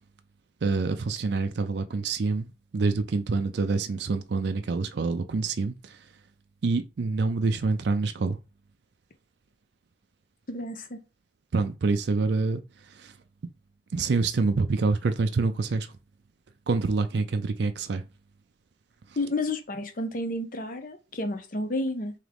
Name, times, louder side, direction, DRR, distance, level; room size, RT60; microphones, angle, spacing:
voice 1, 0.6-2.5 2.7-6.1 6.6-8.4 11.5-13.2 13.9-15.9 16.7-18.0, right 3 dB, 60° right, 0.4 m, -26 dB
voice 2, 10.5-11.0 19.2-22.1, left 2 dB, 45° left, 0.7 m, -31 dB
3.7 x 2.9 x 3.4 m
head